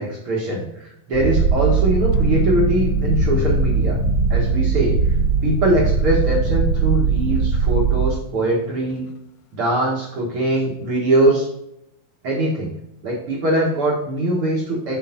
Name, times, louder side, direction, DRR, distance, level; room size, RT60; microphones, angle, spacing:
voice 1, 0.0-4.0 4.3-5.0 5.4-9.1 9.5-11.5 12.2-12.7 13.0-15.0, right 1 dB, 55° right, -3 dB, 1.7 m, -22 dB
Purr, 1.1-8.1, right 5 dB, 70° right, 2.5 m, -20 dB
sound 1, 2.1-9.0, left 6 dB, 80° left, 2.2 m, -31 dB
8.4 x 4.7 x 4.3 m, 0.81 s
omnidirectional pair, 4.1 m